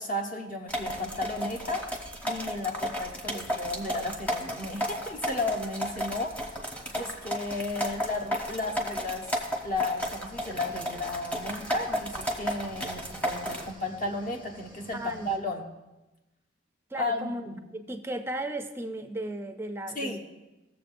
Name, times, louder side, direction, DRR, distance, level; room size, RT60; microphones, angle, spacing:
voice 1, 0.0-1.9 2.2-6.5 6.9-9.3 9.6-15.7 17.0-17.6 19.9-20.2, left 2 dB, 45° left, 2 dB, 1.1 m, -33 dB
sound 1, 0.7-13.7, equal, 5° left, 0.9 m, -33 dB
Cricket / Waves surf, 10.3-15.4, equal, 25° left, 1.4 m, -51 dB
voice 2, 14.9-15.5 16.9-17.5 17.7-20.2, right 1 dB, 10° right, 7 dB, 0.4 m, -35 dB
16.5 x 7.1 x 2.6 m, 1.0 s
head